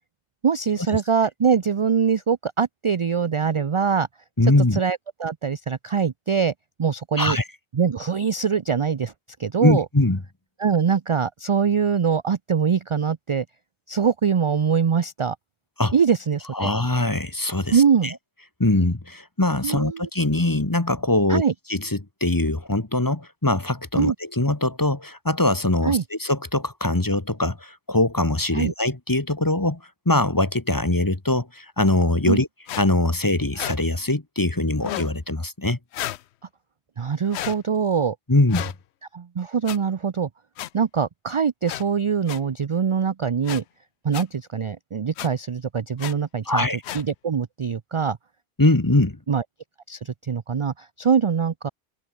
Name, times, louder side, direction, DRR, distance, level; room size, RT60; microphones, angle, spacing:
voice 1, 0.4-4.1 4.4-6.5 6.8-7.4 7.7-9.1 9.4-9.9 10.6-13.4 13.9-15.4 15.9-16.7 17.7-18.2 19.6-20.1 21.3-21.5 24.0-24.1 25.8-26.0 28.5-28.7 32.3-32.4 37.0-38.2 39.1-40.3 40.7-43.6 44.0-46.7 46.9-48.2 49.3-49.4 49.9-51.7, right 6 dB, 40° right, 0.4 m, -23 dB
voice 2, 4.4-4.8 7.2-7.4 9.6-10.2 15.8-15.9 16.5-18.1 18.6-21.4 21.7-29.8 30.0-32.5 32.8-35.8 38.3-38.7 46.4-46.8 48.6-49.2, left 2 dB, 20° left, 1.4 m, -22 dB
sound 1, 32.7-32.8 33.5-33.8 34.8-35.1 35.9-36.2 37.3-37.6 38.5-38.7 39.7-39.8 40.6-40.7 41.7-41.8 42.3-42.4 43.4-43.6 44.1-44.2 45.2-45.3 46.0-46.1 46.8-47.0, left 13 dB, 80° left, 0.8 m, -32 dB
open air
omnidirectional pair, 1.1 m